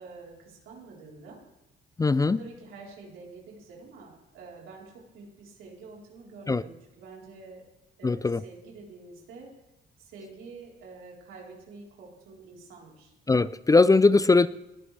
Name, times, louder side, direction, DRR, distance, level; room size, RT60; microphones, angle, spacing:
voice 1, 0.0-1.4 2.4-7.6 8.0-9.5 10.0-13.1, right 3 dB, 90° right, -3 dB, 4.0 m, -47 dB
voice 2, 2.0-2.4 6.5-6.6 8.0-8.4 13.3-14.5, left 3 dB, 15° left, 17 dB, 0.4 m, -20 dB
20.0 x 13.5 x 3.4 m, 0.95 s
cardioid pair, 90°, 20 cm